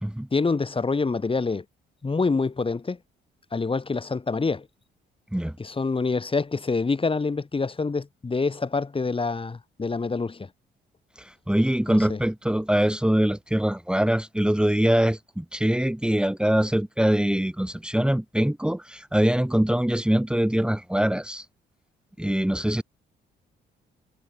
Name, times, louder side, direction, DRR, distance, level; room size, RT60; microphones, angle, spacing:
voice 1, 0.3-1.6 2.0-3.0 3.5-4.7 5.6-10.5 11.9-12.2, left 4 dB, 25° left, 3.6 m, -26 dB
voice 2, 11.2-21.4 22.2-22.8, right 1 dB, 5° right, 2.8 m, -23 dB
cardioid pair, 90°, 20 cm